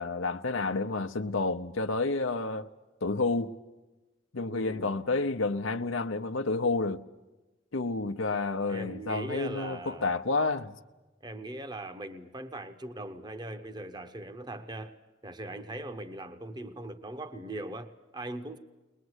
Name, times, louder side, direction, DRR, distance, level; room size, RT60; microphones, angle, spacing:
voice 1, 0.0-2.7 3.0-3.5 4.3-7.0 7.7-10.7, left 3 dB, 90° left, 0.8 m, -30 dB
voice 2, 4.5-5.0 8.7-10.1 11.2-14.9 15.2-18.6, right 1 dB, 20° right, 0.9 m, -40 dB
22.0 x 21.0 x 8.1 m
head